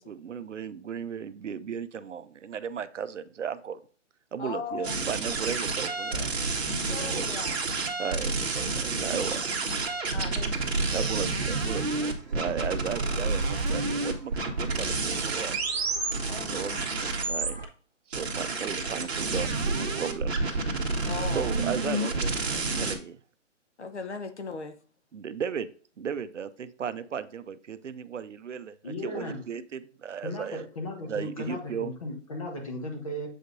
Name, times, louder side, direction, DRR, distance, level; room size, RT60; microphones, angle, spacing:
voice 1, 0.0-3.8 4.3-6.3 7.1-7.3 8.0-9.4 10.9-15.6 16.5-17.7 18.1-20.6 20.9-21.1 21.3-23.2 25.1-25.7 26.0-30.6 31.1-31.9, right 7 dB, 70° right, 13 dB, 0.6 m, -36 dB
voice 2, 4.4-5.0 6.9-7.6 10.1-10.8 13.1-13.3 16.3-16.8 21.0-21.5 23.8-24.8, left 4 dB, 60° left, 8 dB, 0.9 m, -38 dB
sound 1, 4.8-17.5 18.1-23.0, right 3 dB, 55° right, 1.3 m, -29 dB
sound 2, 8.1-17.6, right 2 dB, 35° right, 1.2 m, -44 dB
voice 3, 28.8-29.4 30.2-33.3, left 1 dB, 25° left, 1 dB, 1.2 m, -36 dB
7.7 x 5.0 x 2.6 m, 0.43 s
hypercardioid pair, 175°, 38 cm